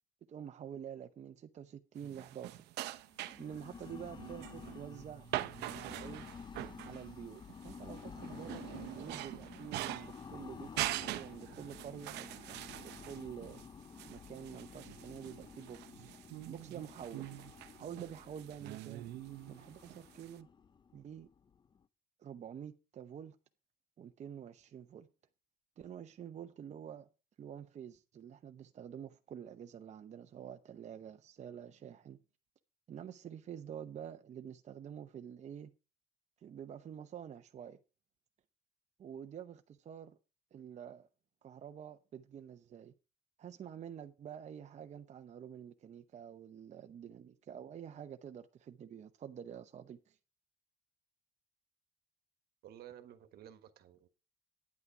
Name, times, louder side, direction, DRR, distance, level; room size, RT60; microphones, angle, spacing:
voice 1, 0.3-2.7 3.4-5.3 5.7-6.3 6.8-13.6 14.1-16.2 16.4-17.3 17.8-19.1 19.5-20.5 20.9-21.3 22.2-23.4 24.0-25.1 25.8-27.1 27.4-32.2 32.9-35.7 36.4-37.8 39.0-40.2 40.5-41.1 41.4-42.9 43.4-50.2, right 9 dB, 45° right, 0.8 m, -48 dB
sound 1, 2.0-20.4, right 15 dB, 85° right, 0.7 m, -44 dB
sound 2, 3.1-21.8, left 6 dB, 25° left, 0.5 m, -52 dB
voice 2, 52.6-54.1, right 11 dB, 65° right, 1.4 m, -53 dB
9.6 x 8.7 x 4.8 m
cardioid pair, 110°, 17 cm